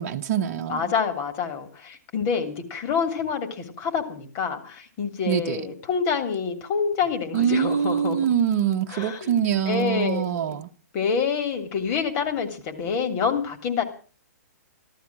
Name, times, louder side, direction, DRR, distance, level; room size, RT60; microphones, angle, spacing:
voice 1, 0.0-0.8 5.3-5.6 7.3-10.7, right 9 dB, 45° right, 1.1 m, -24 dB
voice 2, 0.7-8.3 8.9-9.4 9.6-10.6 10.9-13.8, left 6 dB, 35° left, 3.0 m, -27 dB
14.5 x 13.0 x 6.1 m
hypercardioid pair, 130°, 9 cm